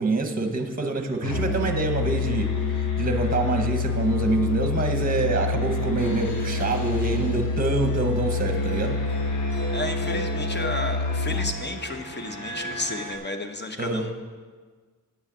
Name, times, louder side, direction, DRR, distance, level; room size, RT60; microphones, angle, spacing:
voice 1, 0.0-9.0 13.8-14.1, right 3 dB, 25° right, 6 dB, 0.9 m, -26 dB
Musical instrument, 1.2-11.6, left 3 dB, 85° left, 0.8 m, -27 dB
sound 1, 1.6-13.2, right 1 dB, 65° left, 1.6 m, -39 dB
voice 2, 9.7-14.2, left 2 dB, 35° left, 6 dB, 0.8 m, -32 dB
9.4 x 6.3 x 7.3 m, 1.5 s
wide cardioid pair, 160°, 33 cm